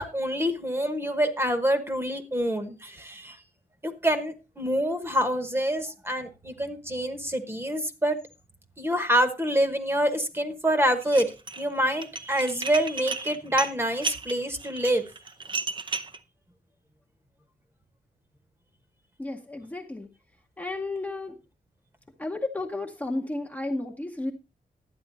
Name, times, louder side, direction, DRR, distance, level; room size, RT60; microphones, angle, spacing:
voice 1, 0.0-3.4 3.8-8.2 8.8-11.3 11.6-15.1, equal, 15° right, 9 dB, 1.2 m, -26 dB
Dishes pots and pans, 11.0-11.6 11.9-16.2, right 4 dB, 30° right, 0.6 m, -33 dB
voice 2, 19.2-20.1 20.6-21.4 22.2-24.3, left 2 dB, 10° left, 1 dB, 0.8 m, -32 dB
11.5 x 9.1 x 4.0 m, 0.28 s
wide cardioid pair, 180°, 16 cm